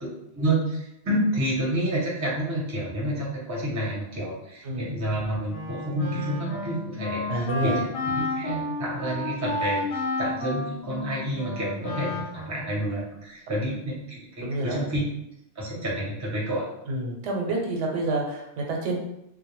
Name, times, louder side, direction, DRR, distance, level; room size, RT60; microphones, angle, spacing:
voice 1, 0.3-7.3 7.6-7.8 8.1-15.0 15.5-16.7, right 1 dB, 20° right, -4 dB, 0.4 m, -29 dB
Wind instrument woodwind instrument, 5.5-12.8, left 2 dB, 65° left, 0.8 m, -32 dB
voice 2, 7.3-7.8 14.4-14.8 16.9-19.0, right 2 dB, 85° right, 0 dB, 0.9 m, -28 dB
2.2 x 2.1 x 2.9 m, 0.84 s
omnidirectional pair, 1.2 m